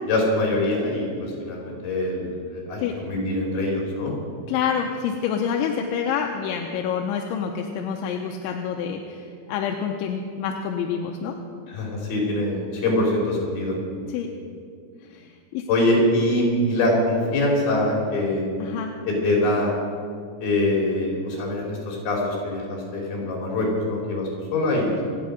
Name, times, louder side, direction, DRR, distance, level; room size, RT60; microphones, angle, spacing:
voice 1, 0.1-4.1 11.7-13.8 15.7-18.6 19.1-19.7 20.4-25.0, left 1 dB, 55° left, -2 dB, 5.3 m, -24 dB
voice 2, 4.5-11.4 14.1-14.3 15.1-15.6 18.6-18.9, left 7 dB, 85° left, 2 dB, 3.2 m, -27 dB
27.5 x 9.6 x 5.1 m, 2.3 s
omnidirectional pair, 5.3 m